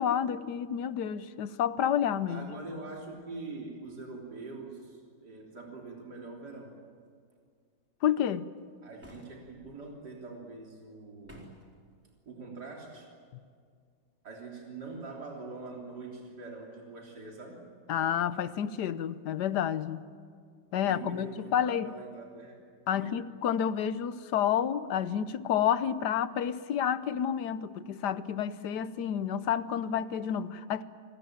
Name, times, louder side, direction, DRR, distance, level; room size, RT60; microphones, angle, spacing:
voice 1, 0.0-2.5 8.0-8.5 17.9-20.0 20.7-21.9 22.9-30.8, left 9 dB, 75° left, 1.4 m, -30 dB
voice 2, 2.3-6.8 8.8-11.5 12.3-13.1 14.2-17.7 20.8-22.6 22.9-23.1, right 3 dB, 70° right, 3.9 m, -44 dB
sound 1, 9.0-9.7 11.2-11.8, equal, 5° right, 4.0 m, -52 dB
28.5 x 20.0 x 9.0 m
omnidirectional pair, 1.8 m